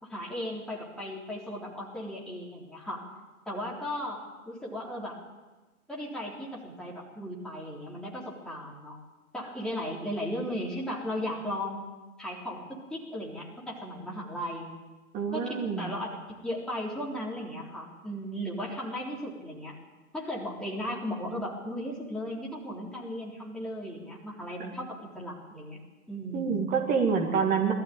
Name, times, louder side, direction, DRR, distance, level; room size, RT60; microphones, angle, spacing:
voice 1, 0.0-3.1 3.5-5.2 5.9-9.0 9.3-11.8 12.2-14.7 15.3-16.2 16.4-19.8 20.1-25.8 26.1-26.6, equal, ahead, -5 dB, 3.8 m, -36 dB
voice 2, 15.1-16.0 26.3-27.7, right 6 dB, 15° right, 2 dB, 2.1 m, -27 dB
20.0 x 14.5 x 8.9 m, 1.2 s
figure-of-eight pair, 135°, 47 cm